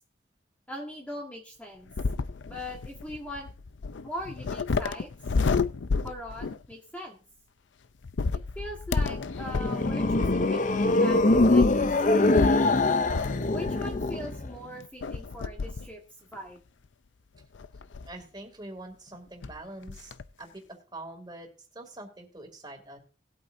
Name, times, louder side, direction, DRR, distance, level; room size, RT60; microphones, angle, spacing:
voice 1, 0.7-1.9 2.5-3.5 4.0-5.1 6.0-7.2 8.5-12.3 13.5-16.0 16.3-16.6, left 1 dB, 10° left, -1 dB, 1.5 m, -40 dB
sound 1, 1.9-6.7 8.0-14.3 15.0-15.9 16.3-16.4 17.6-18.2 19.1-19.2 19.4-19.6 19.9-20.2, left 4 dB, 90° left, 0.5 m, -31 dB
sound 2, 9.2-14.5, left 2 dB, 45° left, 0.6 m, -23 dB
voice 2, 18.1-23.0, right 2 dB, 25° right, 4 dB, 2.6 m, -44 dB
19.0 x 8.5 x 2.7 m, 0.38 s
head